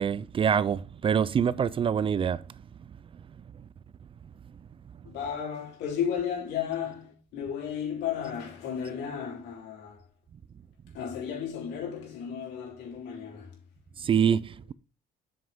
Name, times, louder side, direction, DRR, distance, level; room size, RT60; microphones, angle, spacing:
voice 1, 0.0-2.4 14.0-14.7, right 7 dB, 30° right, 0.4 m, -25 dB
voice 2, 5.0-10.1 10.9-13.6, left 8 dB, 85° left, 3.4 m, -34 dB
7.6 x 5.8 x 3.6 m
cardioid pair, 110°, 17 cm